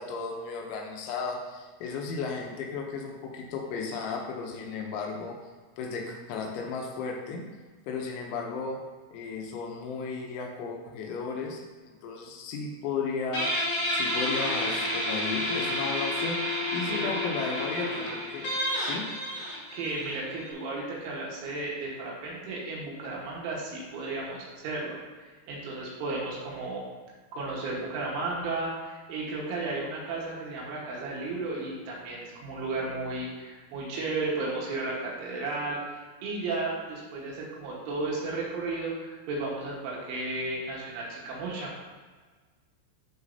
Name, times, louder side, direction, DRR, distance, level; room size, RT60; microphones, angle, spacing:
voice 1, 0.0-5.4 5.8-7.4 7.9-8.8 9.1-13.5 13.9-19.1, left 4 dB, 80° left, 1 dB, 2.8 m, -34 dB
Guitar, 13.3-20.5, left 1 dB, 60° left, 2.0 m, -30 dB
voice 2, 19.7-25.0 25.5-26.8 27.3-41.7, right 3 dB, 75° right, -4 dB, 3.6 m, -34 dB
12.0 x 4.0 x 2.7 m, 1.4 s
omnidirectional pair, 5.9 m